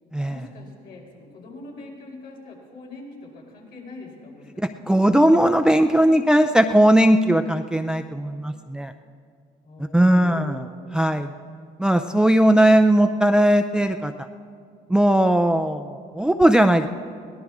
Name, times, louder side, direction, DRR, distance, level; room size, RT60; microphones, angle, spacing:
voice 1, 0.3-4.8 9.6-10.7, left 2 dB, 65° left, -3 dB, 5.5 m, -43 dB
voice 2, 4.6-8.9 9.9-10.7 10.9-11.3 11.8-14.1 14.9-16.9, right 1 dB, 5° right, 7 dB, 0.5 m, -18 dB
22.0 x 18.0 x 3.6 m, 2.2 s
cardioid pair, 110°, 17 cm